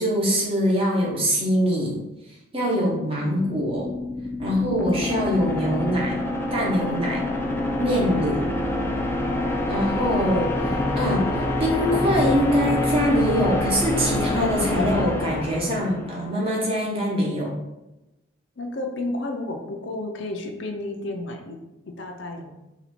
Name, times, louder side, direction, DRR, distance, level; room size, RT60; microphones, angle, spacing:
voice 1, 0.0-2.0 2.5-3.9 4.4-6.2 6.5-7.3 7.8-8.4 9.7-10.5 11.0-11.3 11.6-17.6, equal, 30° right, -3 dB, 0.9 m, -23 dB
voice 2, 3.2-3.5 4.7-5.0 8.2-8.6 10.1-10.4 10.7-10.8 18.6-21.6 21.9-22.5, left 2 dB, 65° left, 3 dB, 0.6 m, -33 dB
sound 1, 3.3-16.3, left 2 dB, 10° left, 0.3 m, -26 dB
4.1 x 2.4 x 4.2 m, 0.96 s
head